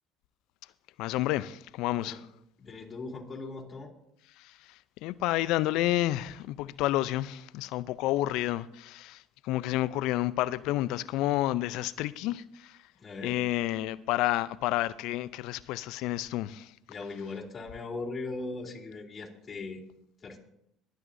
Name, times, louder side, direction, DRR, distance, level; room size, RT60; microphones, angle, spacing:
voice 1, 1.0-2.3 4.4-12.8 13.2-16.7, left 15 dB, 70° left, 0.5 m, -30 dB
voice 2, 2.6-3.9 13.0-13.4 16.9-19.8 20.2-20.4, left 3 dB, 35° left, 3.1 m, -39 dB
23.5 x 9.1 x 2.7 m
hypercardioid pair, 70°, 0 cm